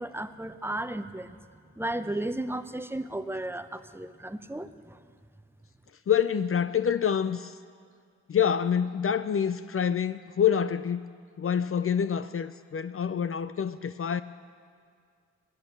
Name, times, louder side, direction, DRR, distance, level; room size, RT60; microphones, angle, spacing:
voice 1, 0.0-1.4 1.8-5.0, right 1 dB, 5° right, 11 dB, 0.8 m, -34 dB
voice 2, 6.1-7.6 8.3-11.0 11.4-14.2, left 8 dB, 45° left, 12 dB, 0.5 m, -26 dB
15.5 x 9.7 x 7.3 m, 2.1 s
supercardioid pair, 45°, 31 cm